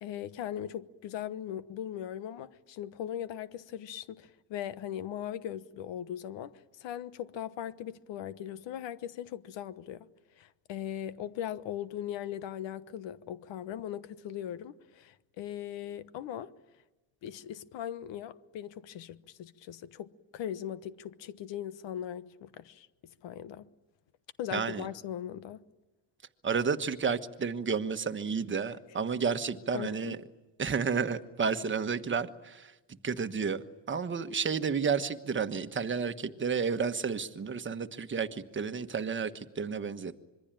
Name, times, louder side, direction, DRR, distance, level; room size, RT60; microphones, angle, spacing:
voice 1, 0.0-6.5 6.8-10.1 10.4-16.5 17.2-22.9 23.2-23.7 24.4-25.6 29.7-30.2, left 10 dB, 70° left, 1.2 m, -39 dB
voice 2, 24.5-24.9 26.4-30.2 30.6-32.7 33.0-40.2, right 5 dB, 25° right, 1.3 m, -31 dB
26.0 x 22.5 x 9.1 m
cardioid pair, 115°, 45 cm